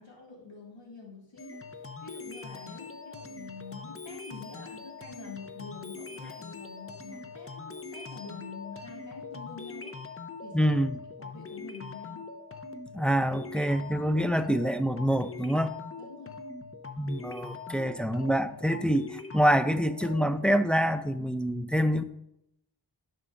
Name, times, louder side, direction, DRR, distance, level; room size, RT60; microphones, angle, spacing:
voice 1, 0.0-1.6 2.0-10.0 10.4-10.8 11.2-12.3 16.0-16.4, left 4 dB, 85° left, -3 dB, 2.1 m, -46 dB
sound 1, 1.4-20.6, left 4 dB, 30° left, 0.7 m, -42 dB
voice 2, 10.5-11.0 12.9-15.8 17.0-22.0, equal, 5° left, 9 dB, 0.4 m, -26 dB
11.0 x 6.7 x 2.5 m, 0.81 s
wide cardioid pair, 55°, 43 cm